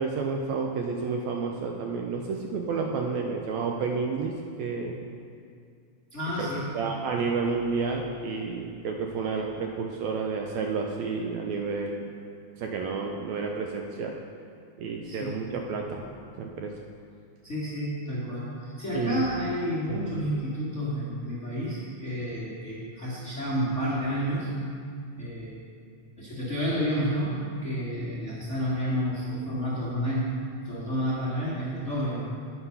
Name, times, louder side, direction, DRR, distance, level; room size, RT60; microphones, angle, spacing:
voice 1, 0.0-4.3 4.6-5.0 6.4-6.5 6.7-12.1 12.6-14.1 14.8-16.0 16.4-16.7 18.9-19.3 19.9-20.0, right 4 dB, 80° right, 1 dB, 1.7 m, -30 dB
voice 2, 6.1-6.8 15.0-15.5 17.4-24.5 25.2-25.6 26.2-30.3 30.6-32.3, equal, 45° left, -9 dB, 0.9 m, -30 dB
9.9 x 5.9 x 5.6 m, 2.3 s
omnidirectional pair, 3.6 m